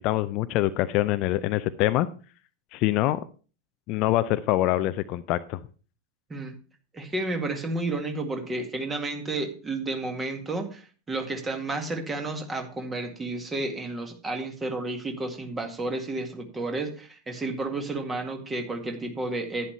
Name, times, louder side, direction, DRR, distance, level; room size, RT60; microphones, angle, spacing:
voice 1, 0.0-2.1 2.7-3.2 3.9-5.6, left 15 dB, 40° left, 13 dB, 0.5 m, -24 dB
voice 2, 6.9-19.7, right 2 dB, 15° right, 5 dB, 1.9 m, -31 dB
11.0 x 10.0 x 3.3 m, 0.37 s
figure-of-eight pair, 90°, 0 cm